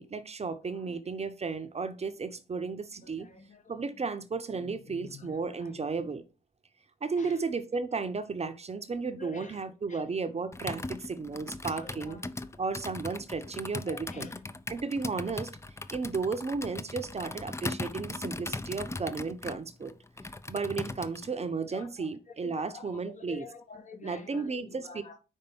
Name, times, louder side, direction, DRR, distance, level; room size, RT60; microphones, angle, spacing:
voice 1, 0.0-3.3 3.7-6.2 7.0-12.2 12.6-14.3 14.7-15.5 15.9-19.9 20.5-23.5 24.0-24.9, right 4 dB, 35° right, 0.8 m, -34 dB
voice 2, 0.6-1.0 2.7-4.0 4.5-5.9 7.2-7.4 9.2-10.0 11.7-12.3 13.9-14.4 17.3-17.5 17.9-18.3 18.7-19.2 21.7-25.2, left 4 dB, 45° left, 1.2 m, -49 dB
Computer keyboard, 10.5-21.3, left 2 dB, 15° left, 0.6 m, -39 dB
5.5 x 3.7 x 5.5 m
hypercardioid pair, 45°, 18 cm